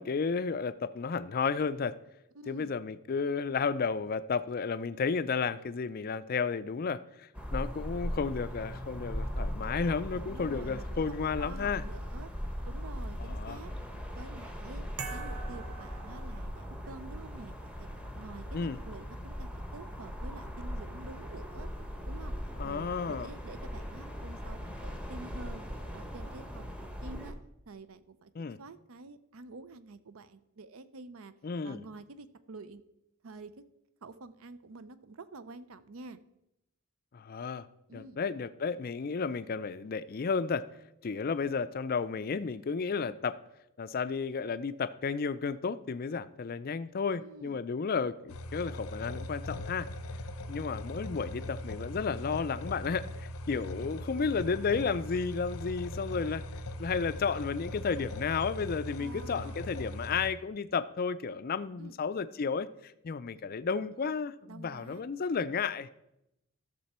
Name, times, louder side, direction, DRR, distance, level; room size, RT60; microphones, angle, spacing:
voice 1, 0.0-1.9 2.5-11.8 13.2-13.6 18.5-18.8 22.6-23.3 28.3-28.6 31.4-31.8 37.1-37.7 37.9-40.6 41.0-43.4 43.8-49.9 50.5-56.4 56.8-65.9, left 5 dB, 40° left, 14 dB, 0.4 m, -32 dB
voice 2, 2.3-2.7 10.1-12.3 12.6-13.7 14.1-14.8 15.1-17.9 18.1-21.7 22.0-25.6 25.9-26.7 27.0-27.4 27.7-31.3 31.6-32.8 33.2-33.6 34.0-36.2 37.9-38.2 47.2-47.6 53.8-53.9 59.0-59.7 61.8-61.9 64.5-65.0, right 3 dB, 65° right, 14 dB, 0.6 m, -48 dB
sound 1, 7.3-27.3, equal, 5° right, 0.9 m, -39 dB
sound 2, 15.0-16.9, right 6 dB, 85° right, 1.1 m, -44 dB
sound 3, 48.3-60.3, left 1 dB, 80° left, 0.7 m, -40 dB
13.5 x 6.8 x 4.3 m, 0.86 s
head